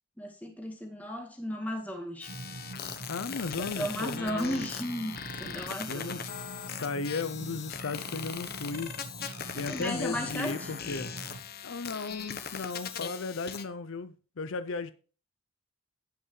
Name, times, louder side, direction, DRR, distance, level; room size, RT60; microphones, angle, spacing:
voice 1, 0.2-2.4 3.6-6.2 9.5-10.7, equal, 5° left, 2.0 m, -35 dB
sound 1, 2.2-13.6, left 7 dB, 45° left, 1.0 m, -40 dB
sound 2, 2.3-11.4, right 2 dB, 70° right, 1.6 m, -45 dB
voice 2, 3.1-4.7 5.9-6.4 6.8-8.9 9.5-11.1 11.6-14.9, left 4 dB, 65° left, 0.6 m, -35 dB
17.0 x 5.6 x 3.2 m
head